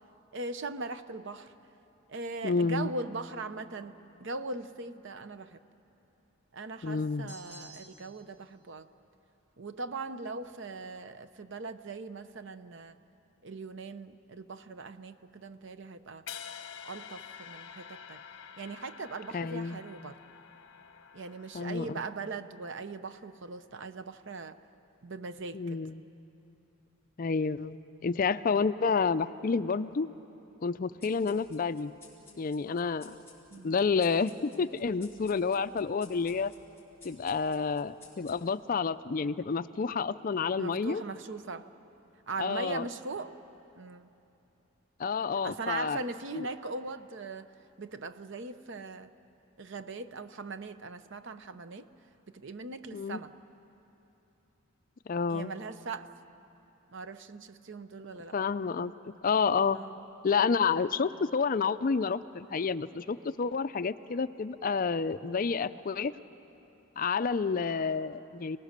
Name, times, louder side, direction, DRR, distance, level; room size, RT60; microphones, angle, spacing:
voice 1, 0.3-1.5 2.1-3.9 4.2-5.6 6.5-8.9 9.6-13.0 13.4-16.2 16.8-18.2 18.6-20.2 21.1-24.6 25.0-25.8 33.5-33.7 40.6-41.7 42.3-43.3 43.7-44.1 45.4-47.5 47.8-49.1 49.6-51.9 52.3-53.3 55.3-56.1 56.9-58.3 59.7-59.9, right 3 dB, 60° right, 12 dB, 0.7 m, -40 dB
voice 2, 2.4-2.9 6.8-7.3 19.3-19.8 21.5-22.0 25.5-26.0 27.2-30.1 30.6-31.9 32.4-33.2 33.6-36.5 37.0-41.0 42.4-42.9 45.0-46.0 46.3-46.5 52.9-53.2 55.1-55.5 58.3-59.8 60.2-66.1 67.0-68.6, left 5 dB, 40° left, 13 dB, 0.4 m, -29 dB
sound 1, 7.3-8.3, right 1 dB, 35° right, 4.1 m, -51 dB
sound 2, 16.3-22.4, left 7 dB, 60° left, 1.1 m, -48 dB
sound 3, 31.0-38.7, left 4 dB, 10° left, 4.5 m, -57 dB
30.0 x 19.0 x 6.7 m, 2.9 s
head